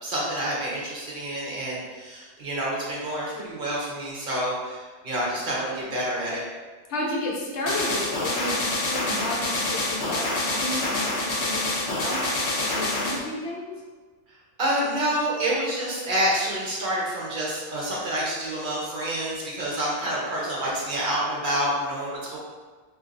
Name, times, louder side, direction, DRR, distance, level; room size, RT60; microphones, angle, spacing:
voice 1, 0.0-6.4 14.6-22.4, right 1 dB, 50° right, -5 dB, 0.8 m, -28 dB
voice 2, 6.9-12.2 12.6-13.7, left 1 dB, 75° left, -3 dB, 1.0 m, -32 dB
sound 1, 7.7-13.2, left 2 dB, 50° left, 0.8 m, -27 dB
2.7 x 2.5 x 3.7 m, 1.4 s
omnidirectional pair, 1.2 m